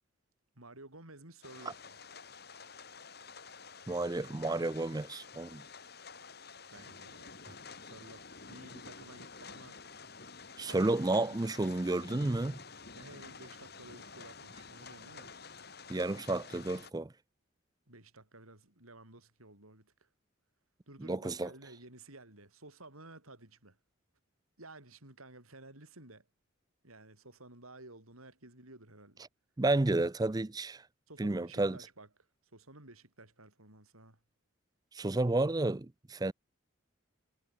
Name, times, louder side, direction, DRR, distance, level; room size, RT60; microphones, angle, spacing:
voice 1, 0.6-1.9 6.7-7.4 7.8-9.8 10.7-10.9 11.2-11.5 13.0-15.4 17.9-20.1 20.9-23.8 24.6-26.3 26.8-29.3 31.1-32.1 32.5-34.2, right 2 dB, 90° right, 7.7 m, -54 dB
sound 1, 1.4-16.9, left 4 dB, 50° left, 4.4 m, -50 dB
voice 2, 3.9-5.6 10.6-12.6 15.9-17.1 21.0-21.5 29.6-30.8 31.2-31.8 34.9-36.3, right 2 dB, 20° right, 0.4 m, -31 dB
head